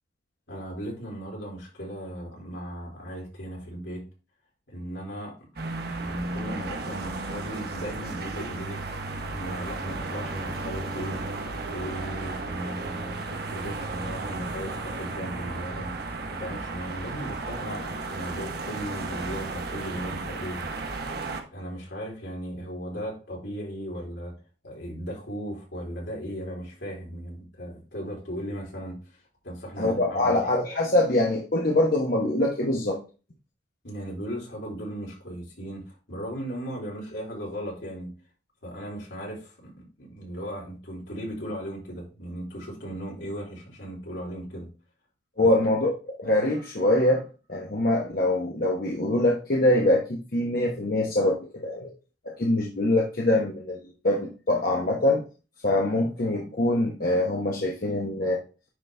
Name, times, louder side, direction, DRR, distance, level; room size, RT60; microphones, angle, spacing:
voice 1, 0.5-4.0 4.7-5.5 5.9-9.0 9.3-11.2 11.7-15.9 16.3-21.0 21.5-24.3 24.6-29.2 29.4-30.4 33.8-38.1 38.6-44.7 45.4-45.6, equal, 75° left, -3 dB, 3.9 m, -37 dB
sound 1, 5.6-21.4, right 3 dB, 55° right, 1.1 m, -34 dB
voice 2, 29.8-33.0 45.4-45.9 46.2-47.2 47.5-51.9 52.2-55.2 55.6-58.4, left 1 dB, 50° left, -1 dB, 1.1 m, -24 dB
9.7 x 4.0 x 3.4 m, 0.34 s
head